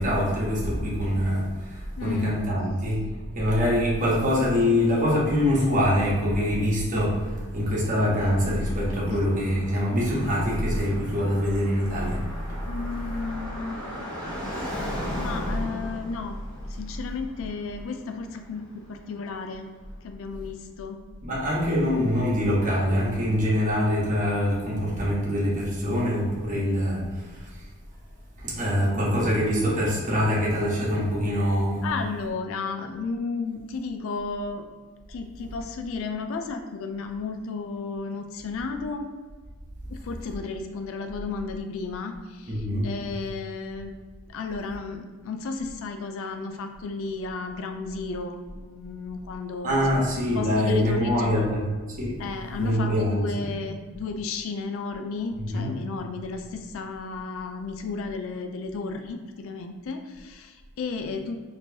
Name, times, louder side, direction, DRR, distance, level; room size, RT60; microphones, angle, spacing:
voice 1, 0.0-3.0 3.3-12.2 12.5-12.6 21.2-27.5 28.4-31.9 42.5-42.9 49.6-51.6 52.0-52.2 52.6-53.3 55.4-55.7, equal, 40° right, -5 dB, 1.1 m, -24 dB
voice 2, 2.0-2.6 9.0-9.2 12.7-13.8 15.2-16.4 16.8-19.7 20.0-21.0 31.8-34.7 35.1-39.1 39.9-44.0 44.3-49.8 50.4-51.4 52.2-61.4, left 4 dB, 70° left, 5 dB, 0.3 m, -33 dB
Car passing by, 7.4-19.4, equal, 5° left, 1.1 m, -38 dB
4.4 x 3.0 x 2.8 m, 1.4 s
head